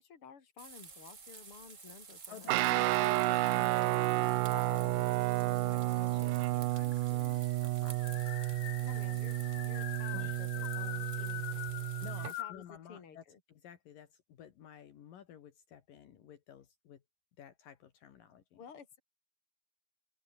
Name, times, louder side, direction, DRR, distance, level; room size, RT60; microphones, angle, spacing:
voice 1, 0.0-3.0 8.8-11.9 12.2-13.4 18.6-19.0, left 6 dB, 40° left, 3.9 m, -53 dB
sound 1, 0.6-12.4, right 5 dB, 30° right, 1.6 m, -52 dB
voice 2, 2.3-8.3 10.1-10.4 12.0-17.0 17.4-18.6, left 9 dB, 70° left, 3.5 m, -53 dB
Guitar, 2.5-12.3, right 18 dB, 80° right, 2.1 m, -31 dB
sound 2, 2.6-4.0 4.5-5.2 6.2-6.3 6.5-6.6 6.9-12.7, left 16 dB, 90° left, 2.9 m, -44 dB
open air
omnidirectional pair, 4.2 m